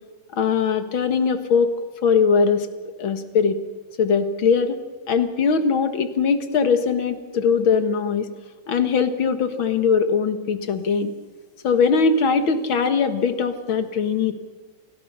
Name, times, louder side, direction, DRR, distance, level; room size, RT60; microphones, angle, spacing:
voice 1, 0.4-1.8 2.0-2.7 3.0-3.6 4.0-4.8 5.1-8.3 8.7-11.2 11.6-14.3, left 5 dB, 85° left, 8 dB, 2.3 m, -20 dB
29.0 x 19.0 x 5.6 m, 1.4 s
omnidirectional pair, 2.1 m